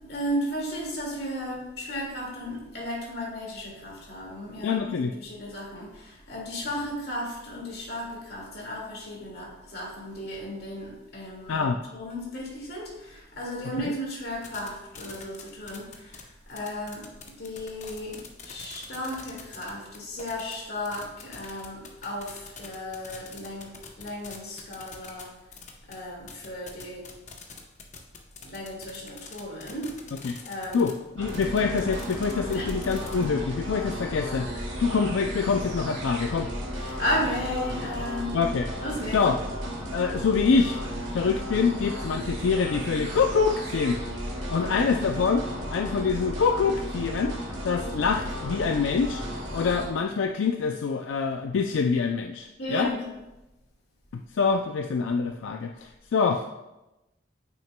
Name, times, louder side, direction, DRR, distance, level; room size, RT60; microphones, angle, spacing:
voice 1, 0.0-11.5 11.9-17.1 17.4-25.3 25.9-27.1 28.4-29.9 30.4-30.8 32.5-32.7 36.8-38.4 38.8-39.2 44.5-44.8 52.6-53.1, equal, 55° left, -3 dB, 2.0 m, -34 dB
voice 2, 4.6-5.1 11.5-11.8 13.8-13.9 30.2-30.4 30.7-36.5 38.3-38.7 39.1-39.4 39.9-40.8 41.1-44.0 44.5-45.5 45.7-47.4 47.6-49.2 49.5-52.9 54.1-56.4, left 5 dB, 85° left, 4 dB, 0.4 m, -25 dB
sound 1, 14.4-14.7 15.0-16.2 16.5-25.9 26.3-30.9 31.3-33.3, left 6 dB, 40° left, 0.8 m, -43 dB
sound 2, 31.2-49.9, equal, 70° right, 1.6 m, -34 dB
8.7 x 6.1 x 2.2 m, 0.96 s
head